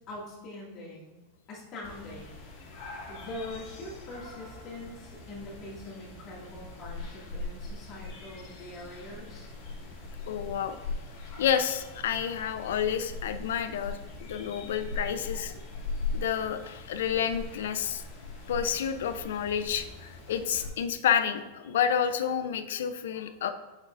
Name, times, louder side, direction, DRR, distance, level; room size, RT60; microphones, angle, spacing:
voice 1, 0.1-1.2 1.5-2.3 3.1-9.5, left 1 dB, 30° left, -5 dB, 2.2 m, -43 dB
sound 1, 1.8-20.7, left 3 dB, 50° left, 2.3 m, -41 dB
voice 2, 10.3-10.8 11.4-15.6 16.1-18.0 18.5-23.5, left 8 dB, 85° left, 10 dB, 0.5 m, -29 dB
8.3 x 6.4 x 2.6 m, 1.2 s
supercardioid pair, 165°, 0 cm